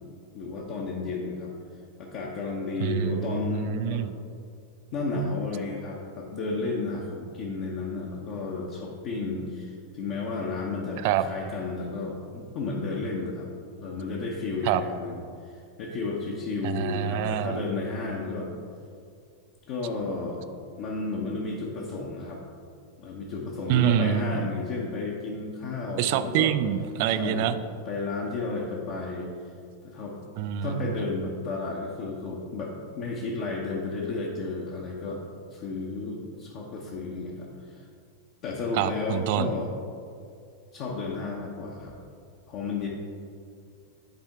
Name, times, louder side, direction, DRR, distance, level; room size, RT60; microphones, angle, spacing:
voice 1, 0.3-1.6 2.0-4.0 4.9-13.5 13.8-18.5 19.7-20.4 20.8-22.4 23.0-26.5 27.2-27.5 27.8-29.5 29.8-30.1 30.6-35.2 35.5-37.8 38.4-39.7 40.7-41.9 42.5-42.9, left 3 dB, 45° left, -3 dB, 0.9 m, -32 dB
voice 2, 2.8-4.1 11.0-11.2 14.6-14.8 16.6-17.6 23.7-24.5 26.0-27.6 30.4-30.9 38.7-39.5, right 10 dB, 50° right, 12 dB, 0.3 m, -26 dB
10.5 x 4.4 x 3.5 m, 2.3 s
figure-of-eight pair, 90°, 0 cm